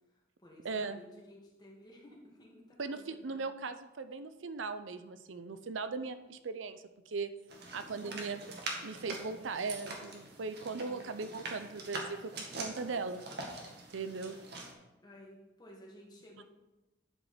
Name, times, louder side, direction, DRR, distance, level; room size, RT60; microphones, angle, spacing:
voice 1, 0.1-3.5 7.7-8.3 10.8-11.1 12.5-12.7 15.0-16.4, equal, 25° left, -3 dB, 2.2 m, -55 dB
voice 2, 0.6-1.0 2.8-7.3 7.7-8.4 8.8-13.2 13.9-14.4, right 4 dB, 90° right, 11 dB, 0.6 m, -39 dB
sound 1, 7.5-14.7, right 2 dB, 60° right, 1.7 m, -44 dB
11.0 x 5.1 x 5.0 m, 1.0 s
head